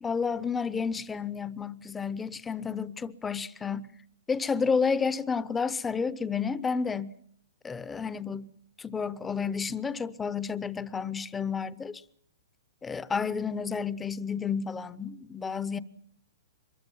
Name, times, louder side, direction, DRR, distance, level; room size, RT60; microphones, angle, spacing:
voice 1, 0.0-3.9 4.3-7.2 7.6-8.5 8.8-12.0 12.8-15.8, left 5 dB, 10° left, 0.9 m, -31 dB
23.5 x 21.5 x 7.3 m
hypercardioid pair, 140°, 0 cm